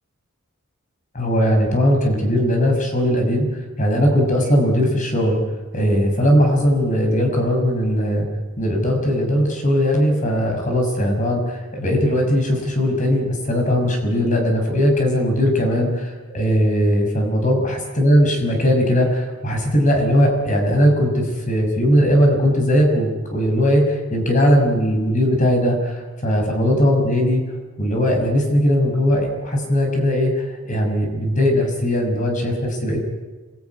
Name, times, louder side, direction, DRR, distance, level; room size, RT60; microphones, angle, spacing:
voice 1, 1.1-5.4 5.7-8.2 8.6-17.6 18.0-27.4 27.8-33.0, equal, 35° left, 2 dB, 6.4 m, -19 dB
26.5 x 20.5 x 9.7 m, 1.3 s
head